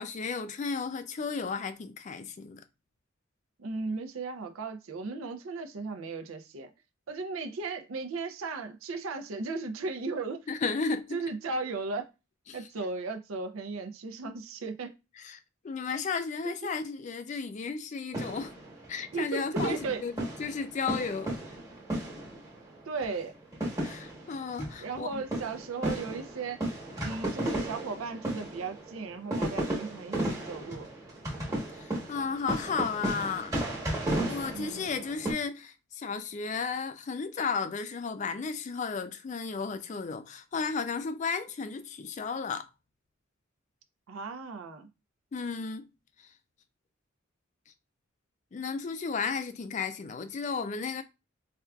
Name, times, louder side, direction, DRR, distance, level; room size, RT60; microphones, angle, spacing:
voice 1, 0.0-2.6 10.5-11.2 12.5-12.6 15.2-15.4 15.6-18.5 18.9-20.1 20.4-21.3 23.8-25.2 31.7-33.5 34.3-42.7 45.3-45.9 46.2-46.3 48.5-51.0, left 5 dB, 35° left, 0.3 m, -34 dB
voice 2, 3.6-6.7 7.1-10.5 11.1-12.1 12.5-15.0 16.4-16.7 19.1-20.0 22.9-23.3 24.8-26.7 27.0-30.9 34.5-35.0 44.1-44.9, right 4 dB, 90° right, 0.5 m, -36 dB
sound 1, 18.1-19.2 19.6-22.7 23.0-23.2 23.5-35.3, right 1 dB, 15° right, 1.1 m, -34 dB
4.4 x 2.4 x 2.2 m
head